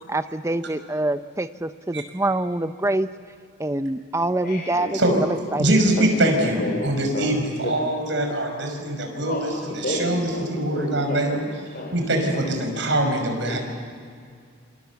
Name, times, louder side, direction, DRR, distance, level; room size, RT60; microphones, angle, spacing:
voice 1, 0.1-3.1 3.6-5.8, right 1 dB, 15° right, 11 dB, 0.7 m, -25 dB
voice 2, 4.4-5.0 6.0-7.3 7.6-7.8 9.3-12.0 12.2-12.4 13.0-13.6, left 1 dB, 50° left, 0 dB, 3.9 m, -32 dB
voice 3, 5.6-9.5 9.9-11.4 11.9-13.6, right 1 dB, 65° right, 3 dB, 5.5 m, -23 dB
28.0 x 26.5 x 7.1 m, 2.2 s
head